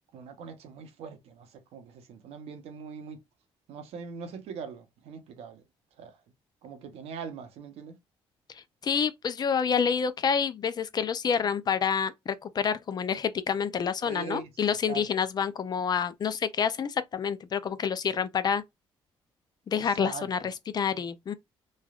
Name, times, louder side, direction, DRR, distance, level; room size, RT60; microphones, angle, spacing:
voice 1, 0.1-3.2 3.7-5.6 6.0-6.2 6.6-8.0 14.0-14.5 14.9-15.0 19.7-20.5, right 6 dB, 80° right, 0.8 m, -42 dB
voice 2, 8.8-18.6 19.7-21.3, left 7 dB, 40° left, 0.4 m, -28 dB
3.2 x 2.3 x 2.4 m
cardioid pair, 95°, 10 cm